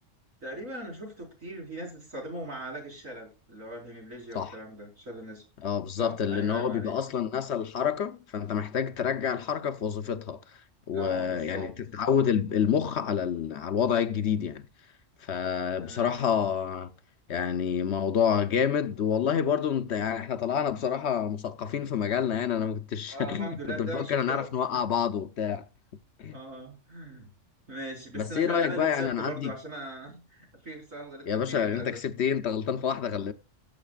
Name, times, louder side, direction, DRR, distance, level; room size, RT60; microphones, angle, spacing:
voice 1, 0.4-5.4 5.9-6.9 10.9-11.7 15.8-16.3 23.1-24.5 24.7-24.8 26.3-27.3 27.7-32.0, right 1 dB, 85° right, 4.8 m, -40 dB
voice 2, 5.6-10.4 10.9-14.7 15.2-16.9 17.3-25.7 26.2-26.4 28.1-29.5 31.3-33.3, left 8 dB, 60° left, 1.0 m, -28 dB
17.0 x 7.8 x 2.4 m
omnidirectional pair, 1.3 m